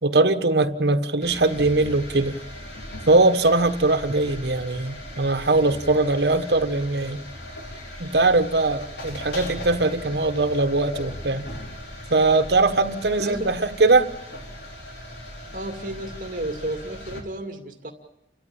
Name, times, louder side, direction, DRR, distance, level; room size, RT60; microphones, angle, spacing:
voice 1, 0.0-2.4 3.1-7.2 8.0-11.4 12.1-14.1, right 2 dB, 75° right, 1.3 m, -21 dB
sound 1, 1.2-17.2, left 1 dB, 80° left, 4.0 m, -38 dB
voice 2, 15.5-17.9, right 1 dB, 50° right, 2.3 m, -32 dB
30.0 x 13.0 x 8.8 m
head